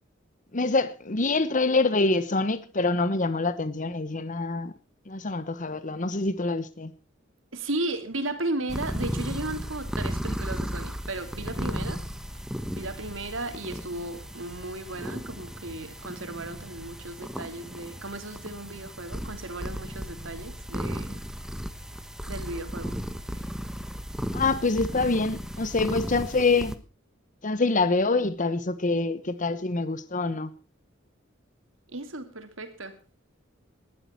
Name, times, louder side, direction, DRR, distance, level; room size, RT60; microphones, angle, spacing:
voice 1, 0.5-4.7 5.1-6.9 24.3-26.8 27.4-30.5, left 3 dB, 40° left, 1.1 m, -25 dB
voice 2, 7.5-12.0 12.7-21.2 22.3-23.0 23.3-23.4 31.9-32.9, right 2 dB, 85° right, 3.0 m, -35 dB
sound 1, 8.7-26.8, equal, 5° right, 1.3 m, -35 dB
19.0 x 12.0 x 4.6 m
head